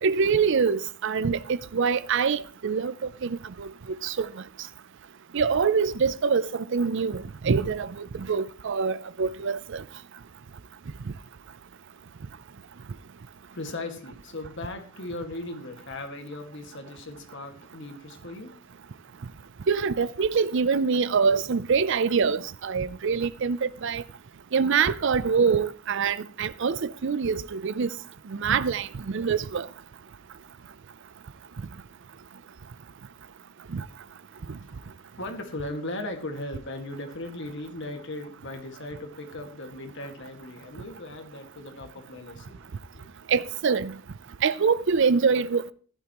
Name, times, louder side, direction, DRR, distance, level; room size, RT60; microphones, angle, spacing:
voice 1, 0.0-2.9 3.2-3.7 4.0-4.3 5.3-9.8 19.7-24.0 24.5-27.9 28.3-29.7 33.7-33.8 34.5-34.6 43.3-43.9 44.4-45.6, right 5 dB, 55° right, 0.5 m, -25 dB
voice 2, 13.5-18.7 34.0-43.1, left 2 dB, 55° left, 1.9 m, -38 dB
15.0 x 12.0 x 3.0 m
head